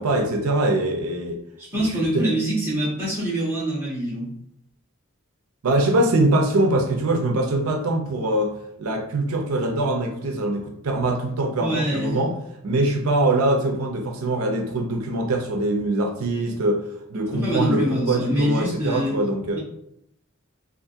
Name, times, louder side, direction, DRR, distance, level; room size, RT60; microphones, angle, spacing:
voice 1, 0.0-1.4 1.7-2.3 5.6-12.3 12.6-19.6, right 2 dB, 80° right, 3 dB, 0.5 m, -23 dB
voice 2, 1.6-4.3 11.6-12.2 17.3-19.2 19.5-19.6, equal, 10° right, -8 dB, 1.5 m, -24 dB
3.4 x 2.6 x 2.7 m, 0.76 s
head